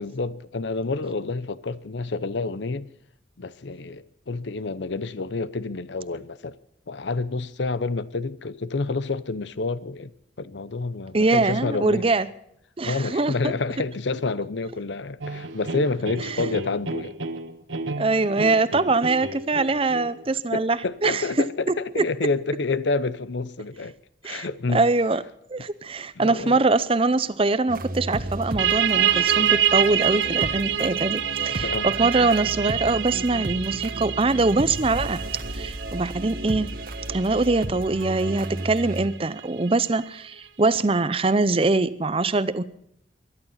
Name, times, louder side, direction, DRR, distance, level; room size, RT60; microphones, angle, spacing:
voice 1, 0.0-2.9 3.4-6.6 6.9-10.1 10.4-12.1 12.8-17.1 20.5-24.0 24.2-24.9 26.2-26.6 31.4-31.9, left 3 dB, 70° left, 0.7 m, -28 dB
voice 2, 11.1-12.3 12.8-13.3 18.0-21.2 22.0-22.1 24.2-24.5 24.7-25.2 25.5-35.2 35.5-36.7 37.1-42.6, right 3 dB, 30° right, 0.6 m, -23 dB
sound 1, 15.2-20.2, right 2 dB, 90° right, 1.3 m, -33 dB
sound 2, 27.7-39.1, right 1 dB, 45° right, 1.3 m, -34 dB
sound 3, 28.6-39.9, right 10 dB, 75° right, 1.0 m, -26 dB
22.5 x 11.5 x 5.7 m
head